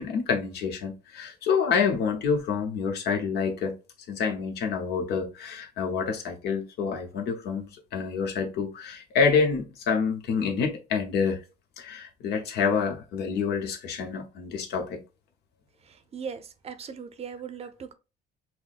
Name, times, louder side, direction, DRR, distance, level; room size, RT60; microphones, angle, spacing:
voice 1, 0.0-3.7 4.1-11.4 11.8-15.0, left 5 dB, 75° left, 0.9 m, -27 dB
voice 2, 15.8-17.9, right 6 dB, 35° right, 0.6 m, -39 dB
5.8 x 2.1 x 2.4 m
cardioid pair, 110°, 17 cm